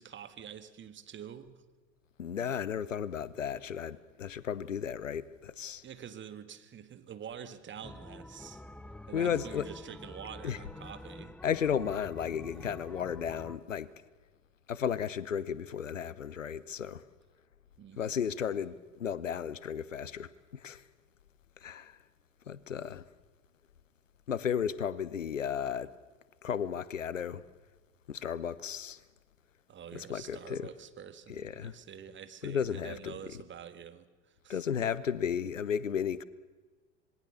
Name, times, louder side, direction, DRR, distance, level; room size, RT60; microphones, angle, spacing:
voice 1, 0.0-1.6 5.8-8.6 9.1-11.4 17.8-18.1 29.7-34.6, right 8 dB, 30° right, 1.9 m, -47 dB
voice 2, 2.2-5.8 9.1-9.7 10.4-10.6 11.4-13.9 14.7-17.0 18.0-20.8 21.6-22.0 22.5-23.0 24.3-25.9 26.4-27.4 28.1-29.0 29.9-30.7 31.3-31.7 32.4-33.1 34.5-36.2, left 8 dB, 85° left, 0.9 m, -34 dB
sound 1, 7.8-13.6, left 1 dB, 5° left, 0.7 m, -47 dB
26.5 x 21.5 x 6.9 m
figure-of-eight pair, 75°, 37 cm